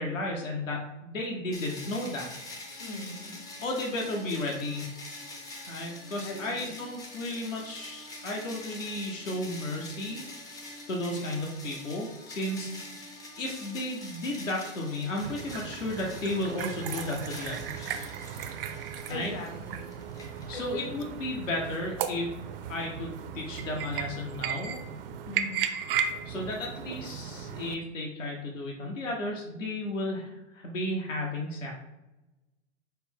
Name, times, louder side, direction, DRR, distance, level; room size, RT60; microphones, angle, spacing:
voice 1, 0.0-2.3 3.6-4.9 5.7-12.7 13.4-18.1 19.1-19.3 20.5-22.3 22.7-24.8 26.2-31.8, left 1 dB, 85° left, -1 dB, 0.9 m, -34 dB
sound 1, 1.5-20.9, left 2 dB, 10° left, 0.3 m, -45 dB
voice 2, 2.8-3.4 6.2-6.7 12.6-12.8 19.1-19.9 20.5-21.0 25.3-25.7, left 2 dB, 60° left, 3 dB, 1.1 m, -40 dB
sound 2, 15.2-27.7, right 8 dB, 50° right, 0.4 m, -36 dB
5.6 x 2.1 x 3.5 m, 0.99 s
hypercardioid pair, 110°, 37 cm